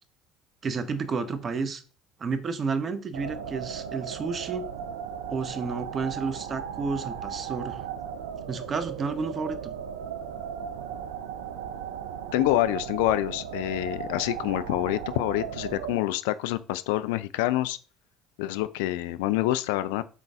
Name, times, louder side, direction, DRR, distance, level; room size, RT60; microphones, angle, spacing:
voice 1, 0.6-1.8 2.2-4.6 5.3-7.9 8.5-9.7, right 4 dB, 40° right, 1.0 m, -31 dB
sound 1, 3.1-16.0, right 8 dB, 80° right, 0.6 m, -36 dB
voice 2, 12.3-17.8 18.4-20.0, left 15 dB, 75° left, 0.5 m, -27 dB
8.3 x 4.0 x 3.7 m
hypercardioid pair, 70°, 0 cm